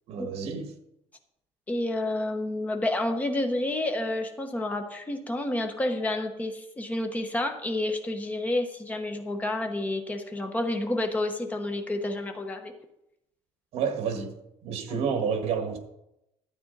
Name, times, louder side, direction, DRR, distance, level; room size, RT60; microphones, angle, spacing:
voice 1, 0.1-0.7 13.7-15.8, right 6 dB, 65° right, 1.7 m, -30 dB
voice 2, 1.7-12.7 14.9-15.0, left 1 dB, 15° left, 1.0 m, -29 dB
12.5 x 8.6 x 4.0 m
cardioid pair, 170°, 11 cm